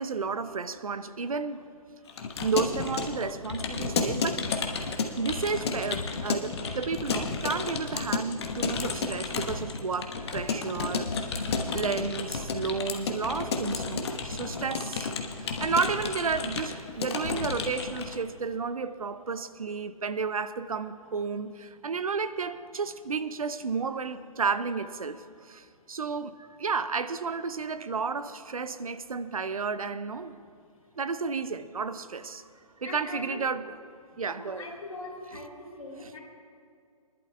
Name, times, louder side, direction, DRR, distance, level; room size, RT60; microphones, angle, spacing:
voice 1, 0.0-1.6 2.4-4.4 5.2-11.5 11.7-15.1 15.4-30.3 31.0-32.4 32.8-33.8 34.2-34.7 35.3-35.4 36.0-36.1, right 5 dB, 70° right, 0.6 m, -32 dB
Keyboard (musical) / Computer keyboard, 2.1-18.2, left 4 dB, 45° left, 1.1 m, -32 dB
voice 2, 32.8-33.4 34.3-36.2, left 2 dB, 65° left, 2.8 m, -41 dB
23.5 x 11.5 x 2.2 m
figure-of-eight pair, 135°, 19 cm